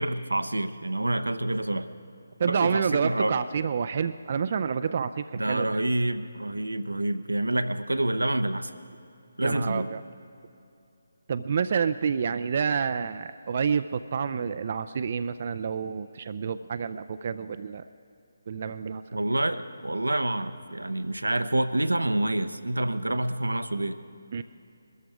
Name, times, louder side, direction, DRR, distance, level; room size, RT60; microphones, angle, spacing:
voice 1, 0.0-1.9 2.4-3.4 5.3-8.8 9.4-9.9 19.1-24.0, right 1 dB, 85° right, 10 dB, 0.7 m, -27 dB
voice 2, 2.4-5.7 9.4-10.0 11.3-17.8 18.5-19.2 24.3-24.4, right 6 dB, 45° right, 11 dB, 0.4 m, -28 dB
20.5 x 13.5 x 4.9 m, 2.7 s
figure-of-eight pair, 150°, 0 cm